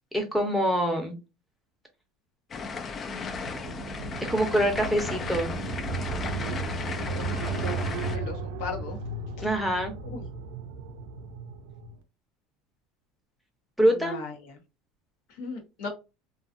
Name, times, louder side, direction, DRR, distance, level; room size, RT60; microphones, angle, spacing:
voice 1, 0.1-1.1 4.3-5.6 9.4-9.9 13.8-14.2, equal, ahead, 3 dB, 0.7 m, -25 dB
sound 1, 2.5-8.2, left 5 dB, 30° left, 0.3 m, -35 dB
sound 2, 3.1-12.0, right 4 dB, 85° right, 0.4 m, -35 dB
voice 2, 6.4-9.0 9.4-9.5 10.0-10.2 13.8-14.3 15.3-15.9, left 4 dB, 75° left, 2 dB, 0.9 m, -38 dB
2.4 x 2.3 x 2.5 m, 0.27 s
supercardioid pair, 130°, 0 cm